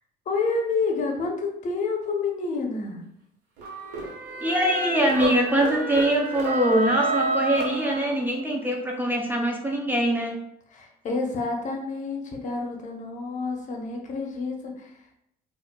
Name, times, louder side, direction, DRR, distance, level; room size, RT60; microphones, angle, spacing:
voice 1, 0.3-3.0 10.7-15.0, left 4 dB, 45° left, 1 dB, 0.8 m, -29 dB
sound 1, 3.6-8.4, right 3 dB, 85° right, 1.1 m, -29 dB
voice 2, 4.4-10.4, right 1 dB, 10° right, -1 dB, 0.5 m, -23 dB
4.3 x 2.5 x 2.2 m, 0.76 s
cardioid pair, 110°, 17 cm